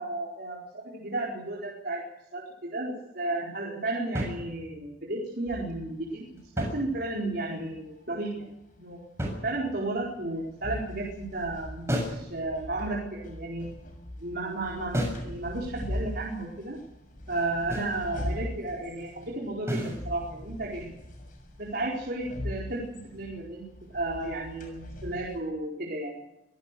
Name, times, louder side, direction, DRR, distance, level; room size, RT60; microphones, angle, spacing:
voice 1, 0.0-2.0 2.3-6.3 6.6-8.5 8.8-9.0 9.4-13.7 14.2-16.8 17.3-20.9 21.6-26.1, right 2 dB, 60° right, -4 dB, 4.6 m, -33 dB
sound 1, 4.1-4.9 6.4-7.4 9.2-10.0 11.9-12.3 14.9-15.3 17.7-18.0 19.7-20.0, equal, 15° right, 7.1 m, -32 dB
sound 2, 5.5-25.4, left 1 dB, 50° left, 6.7 m, -41 dB
26.0 x 17.0 x 6.9 m, 0.89 s
head